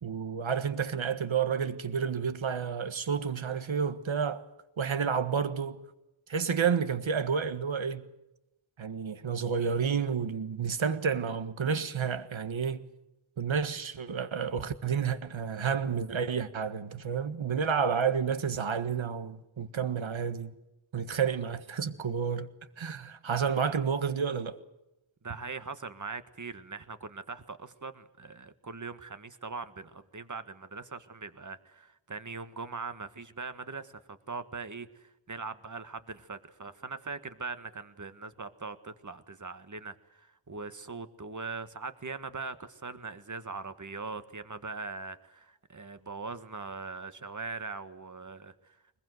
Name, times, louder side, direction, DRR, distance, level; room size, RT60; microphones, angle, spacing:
voice 1, 0.0-4.4 4.8-5.8 6.3-8.0 8.8-12.8 13.4-20.5 20.9-22.5 22.8-24.6, right 6 dB, 70° right, 1.6 m, -30 dB
voice 2, 25.2-49.0, right 4 dB, 40° right, 1.7 m, -41 dB
23.0 x 21.5 x 8.0 m
wide cardioid pair, 90°, 48 cm